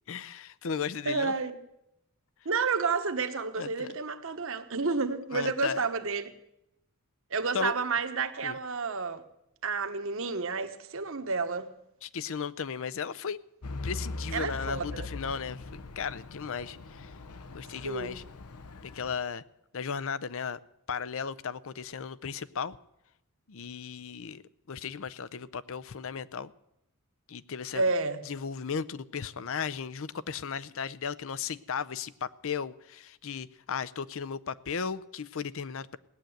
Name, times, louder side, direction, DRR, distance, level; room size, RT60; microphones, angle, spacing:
voice 1, 0.1-1.3 3.6-3.9 5.3-5.8 7.5-7.7 8.4-8.6 12.0-13.4 13.8-17.1 17.5-18.2 18.8-19.4 19.7-20.6 20.9-22.8 23.5-24.4 24.7-26.5 27.3-27.8 28.3-36.0, left 6 dB, 65° left, 0.6 m, -35 dB
voice 2, 1.1-1.6 2.4-6.3 7.3-9.2 9.6-11.7 14.3-15.1 17.8-18.2 27.7-28.2, right 4 dB, 60° right, 1.2 m, -30 dB
Truck / Idling, 13.6-19.2, left 3 dB, 90° left, 0.9 m, -41 dB
17.5 x 10.0 x 7.9 m
head